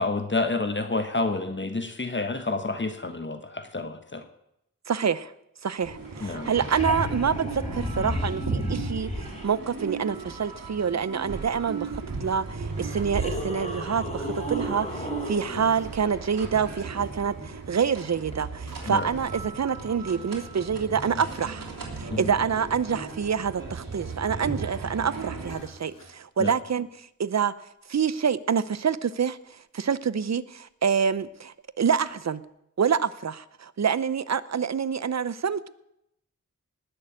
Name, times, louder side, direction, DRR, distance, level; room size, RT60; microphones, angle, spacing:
voice 1, 0.0-4.2 6.2-6.5 18.9-19.1 22.1-22.3 26.4-26.5, left 3 dB, 35° left, 8 dB, 1.4 m, -29 dB
voice 2, 4.9-5.3 5.6-21.7 21.9-32.4 32.8-35.7, right 7 dB, 55° right, 16 dB, 0.8 m, -27 dB
sound 1, 5.8-25.6, right 4 dB, 85° right, 3.1 m, -36 dB
sound 2, 6.1-6.2 6.3-9.4 11.9-12.0 12.7-15.8 18.3-18.4, left 1 dB, 20° left, 3.8 m, -33 dB
sound 3, 14.8-15.4 16.5-17.2 17.8-18.1 18.6-19.4 20.3-20.4 20.8-24.0 24.9-25.1 25.5-26.2 29.4-29.5 31.2-31.3 32.0-32.2, left 3 dB, 70° left, 3.9 m, -52 dB
19.0 x 6.7 x 8.5 m, 0.82 s
wide cardioid pair, 70°, 33 cm